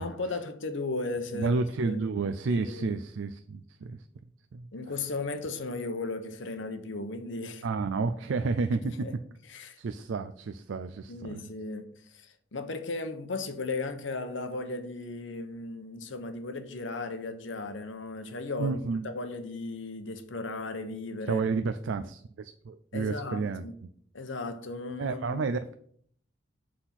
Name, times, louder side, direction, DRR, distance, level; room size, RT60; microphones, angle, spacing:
voice 1, 0.0-2.0 2.5-2.9 4.7-7.7 8.8-9.1 9.5-9.8 11.1-21.5 22.9-23.7 24.1-25.4, left 3 dB, 70° left, 0.9 m, -36 dB
voice 2, 1.3-4.0 4.5-4.7 7.6-9.1 9.8-11.5 18.6-19.1 21.3-23.6 25.0-25.8, right 4 dB, 70° right, 0.4 m, -31 dB
7.9 x 4.2 x 5.8 m
head